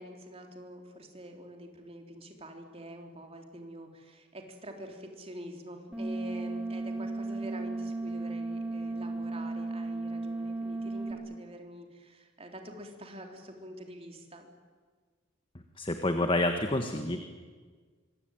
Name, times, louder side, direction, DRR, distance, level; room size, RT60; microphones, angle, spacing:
voice 1, 0.0-14.5, right 1 dB, 30° right, 3 dB, 3.6 m, -46 dB
sound 1, 5.9-11.1, right 2 dB, 5° right, 4.7 m, -35 dB
voice 2, 15.8-17.2, left 1 dB, 25° left, 6 dB, 1.4 m, -28 dB
25.5 x 24.5 x 9.3 m, 1.5 s
head